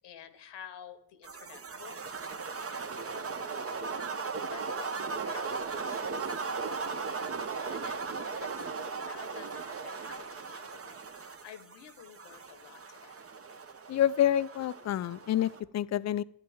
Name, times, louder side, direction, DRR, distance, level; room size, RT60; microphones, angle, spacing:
voice 1, 0.0-13.2, left 9 dB, 75° left, 11 dB, 1.1 m, -52 dB
sound 1, 1.2-15.6, right 5 dB, 30° right, 0.9 m, -37 dB
voice 2, 13.9-16.2, left 11 dB, 40° left, 19 dB, 0.4 m, -28 dB
11.0 x 10.0 x 3.5 m, 0.75 s
supercardioid pair, 55°, 43 cm